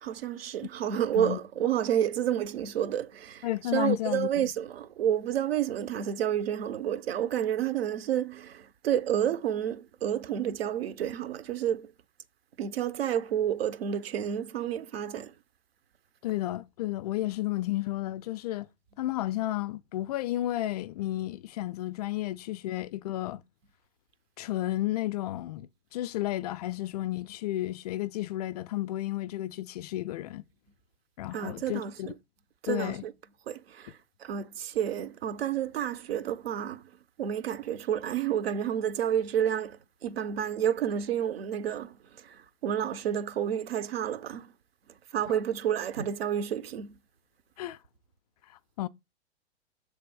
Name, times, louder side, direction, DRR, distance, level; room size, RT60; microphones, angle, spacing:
voice 1, 0.0-11.9 12.6-15.3 31.3-32.1 32.6-33.1 33.5-36.8 37.2-44.5 45.1-47.0, right 9 dB, 60° right, 0.8 m, -30 dB
voice 2, 3.4-4.5 16.2-18.7 19.0-23.4 24.4-30.4 31.2-32.1 32.7-33.0 45.3-45.4 47.6-47.8 48.8-48.9, left 15 dB, 40° left, 0.4 m, -32 dB
7.0 x 3.4 x 6.1 m
figure-of-eight pair, 105°, 33 cm